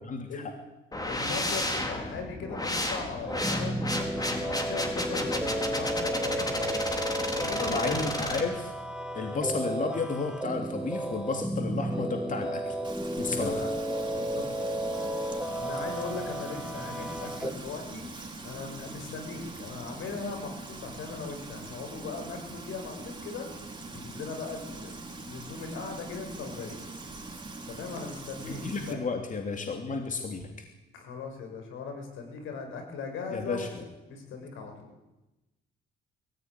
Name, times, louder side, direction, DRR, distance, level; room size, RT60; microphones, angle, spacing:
voice 1, 0.1-0.4 7.7-8.7 9.1-12.8 13.2-13.5 28.5-30.6 33.3-33.7, left 4 dB, 40° left, 4 dB, 3.2 m, -32 dB
sound 1, 0.9-8.4, left 1 dB, 20° left, 4.6 m, -32 dB
voice 2, 1.1-3.7 4.1-6.9 7.4-8.0 9.2-9.4 13.3-13.7 14.1-14.8 15.6-18.1 18.4-23.5 23.9-26.8 27.7-29.0 30.9-33.8 34.1-34.9, left 5 dB, 85° left, 4 dB, 6.9 m, -38 dB
sound 2, 3.3-17.5, right 1 dB, 5° right, 2.3 m, -33 dB
Frying (food), 12.8-28.9, right 3 dB, 20° right, 4.8 m, -43 dB
22.5 x 15.5 x 9.9 m, 1.0 s
cardioid pair, 90°, 20 cm